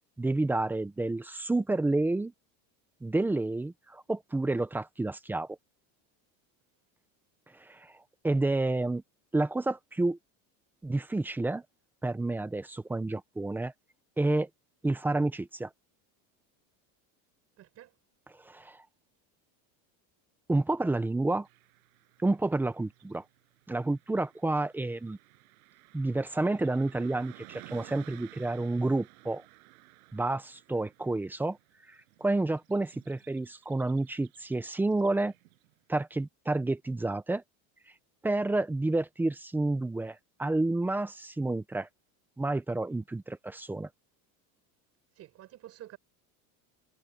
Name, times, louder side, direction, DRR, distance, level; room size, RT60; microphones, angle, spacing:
voice 1, 0.2-2.3 3.0-5.5 7.6-7.9 8.2-9.0 9.3-10.2 10.8-11.6 12.0-13.7 14.2-14.5 14.8-15.7 18.4-18.8 20.5-21.5 22.2-23.2 23.7-25.2 25.9-29.4 30.1-31.6 32.2-35.3 35.9-37.4 38.2-41.9 42.4-43.9, right 2 dB, 5° right, 0.6 m, -29 dB
voice 2, 17.6-17.9 45.2-46.0, right 13 dB, 35° right, 6.9 m, -49 dB
Car passing by / Traffic noise roadway noise, 21.4-35.7, right 24 dB, 90° right, 7.0 m, -56 dB
cardioid pair, 165°, 42 cm